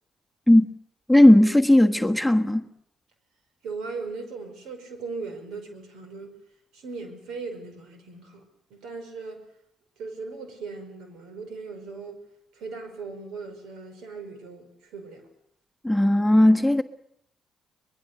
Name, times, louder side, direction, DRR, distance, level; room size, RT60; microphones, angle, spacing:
voice 1, 1.1-2.7 15.8-16.8, left 1 dB, ahead, 1.5 m, -16 dB
voice 2, 3.6-6.4 6.7-8.4 8.7-9.4 10.0-12.2 12.5-15.2, right 4 dB, 80° right, 5.2 m, -38 dB
23.5 x 22.0 x 6.7 m
supercardioid pair, 60°, 0 cm